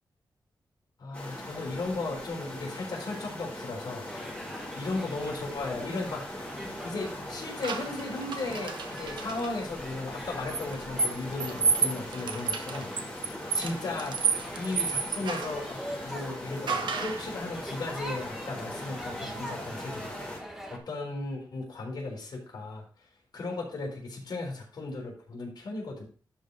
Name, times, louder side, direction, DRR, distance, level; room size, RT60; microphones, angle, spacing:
voice 1, 1.0-4.0 4.8-6.5 6.8-12.9 13.5-14.2 14.5-22.8 23.3-26.0, left 2 dB, 65° left, -1 dB, 3.9 m, -36 dB
sound 1, 1.1-20.4, left 1 dB, 15° left, 2.7 m, -41 dB
sound 2, 4.1-20.8, equal, 5° right, 1.7 m, -43 dB
sound 3, 7.6-9.5 10.5-15.6 16.7-17.3, right 5 dB, 85° right, 1.1 m, -31 dB
12.0 x 4.9 x 4.0 m, 0.41 s
wide cardioid pair, 145°, 8 cm